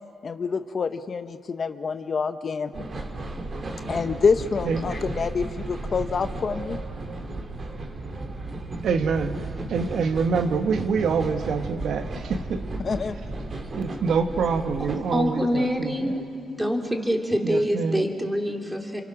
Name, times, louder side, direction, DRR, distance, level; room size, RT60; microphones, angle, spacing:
voice 1, 0.2-2.7 3.9-6.8 12.8-13.2, left 5 dB, 45° left, 9 dB, 0.9 m, -26 dB
sound 1, 2.7-15.3, right 2 dB, 40° right, 2.6 m, -34 dB
voice 2, 4.6-5.0 8.8-12.7 13.7-16.2 17.4-18.1, right 5 dB, 65° right, 7 dB, 1.2 m, -26 dB
voice 3, 14.8-16.1 16.6-19.0, equal, 5° right, 2 dB, 3.1 m, -25 dB
29.0 x 24.5 x 6.1 m, 2.5 s
cardioid pair, 90°, 0 cm